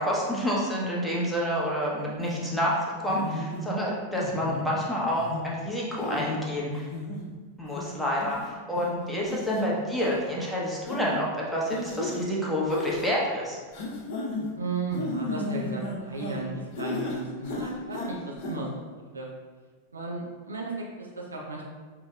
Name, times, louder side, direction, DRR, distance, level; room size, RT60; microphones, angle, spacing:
voice 1, 0.0-6.9 7.6-13.6, equal, ahead, -6 dB, 0.9 m, -28 dB
sound 1, 2.3-2.4 3.1-3.6 4.2-4.6 5.2-5.4 6.0-6.3 6.8-7.2 7.8-7.9 8.2-8.4 8.8-8.9 9.3-9.6 10.0-10.1 10.9-11.1 11.7-12.2 12.7-13.1 13.7-14.5 14.9-16.4 16.8-17.2 17.4-18.1 18.4-18.5, left 2 dB, 45° left, 0.8 m, -34 dB
voice 2, 14.6-18.8 19.1-19.3 19.9-21.7, right 3 dB, 75° right, -2 dB, 0.7 m, -34 dB
5.2 x 3.0 x 2.3 m, 1.5 s
figure-of-eight pair, 90°, 0 cm